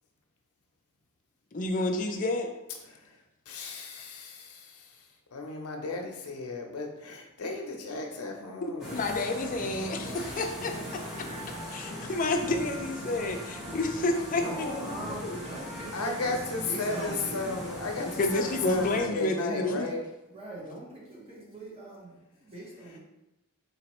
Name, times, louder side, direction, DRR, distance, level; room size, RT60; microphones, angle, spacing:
voice 1, 1.5-2.5 8.6-11.3 11.7-15.4 18.0-19.9, left 2 dB, 40° left, 4 dB, 0.4 m, -30 dB
voice 2, 3.5-3.9 4.3-4.9 5.3-9.0 15.9-20.0, left 3 dB, 85° left, 2 dB, 0.6 m, -34 dB
sound 1, 8.8-19.0, equal, 5° right, 1.1 m, -39 dB
voice 3, 14.4-17.5 20.3-23.0, right 1 dB, 30° right, -6 dB, 0.9 m, -41 dB
4.0 x 2.9 x 3.0 m, 0.94 s
head